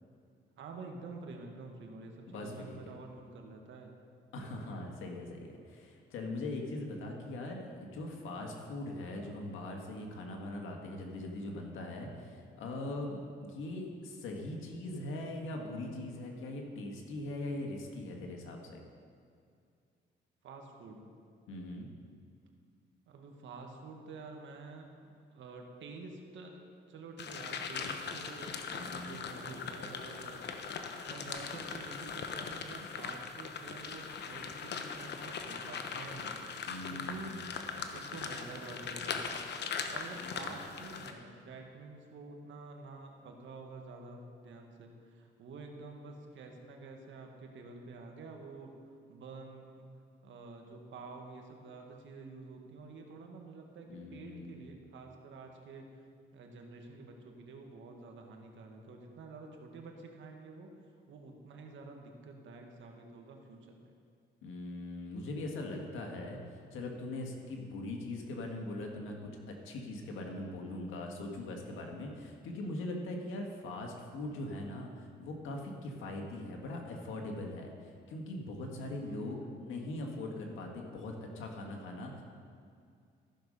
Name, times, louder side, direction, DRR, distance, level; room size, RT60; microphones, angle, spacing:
voice 1, 0.6-3.9 20.4-21.1 23.1-30.4 31.1-37.5 37.9-39.5 39.9-49.8 50.2-56.1 56.3-60.7 61.1-63.9 67.4-67.5 79.0-79.5, right 3 dB, 70° right, 2 dB, 1.6 m, -49 dB
voice 2, 2.3-2.8 4.3-18.8 21.5-21.9 28.7-29.2 36.7-37.4 40.2-40.5 53.9-54.7 64.4-82.2, left 2 dB, 85° left, 1 dB, 1.7 m, -41 dB
sound 1, 27.2-41.1, left 5 dB, 60° left, 1.0 m, -40 dB
14.0 x 6.4 x 5.5 m, 2.3 s
cardioid pair, 90°, 20 cm